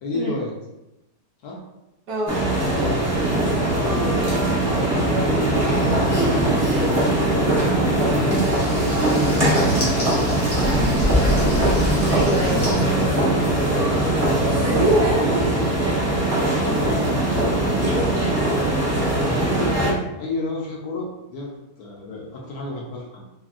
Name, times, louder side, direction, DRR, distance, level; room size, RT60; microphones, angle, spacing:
voice 1, 0.0-0.5 1.4-1.6 3.3-4.6 4.9-6.1 6.8-10.2 11.4-11.7 14.1-15.5 16.4-17.7 18.0-18.3 19.1-23.2, left 2 dB, 70° left, -2 dB, 1.1 m, -32 dB
voice 2, 2.1-2.4 12.1-13.1 14.6-15.6, right 1 dB, 70° right, -2 dB, 1.2 m, -24 dB
sound 1, 2.3-19.9, right 1 dB, 25° right, 0.3 m, -20 dB
Water tap faucet / Liquid, 8.3-13.8, equal, 35° left, 0.7 m, -35 dB
3.4 x 2.2 x 2.4 m, 0.93 s
omnidirectional pair, 1.8 m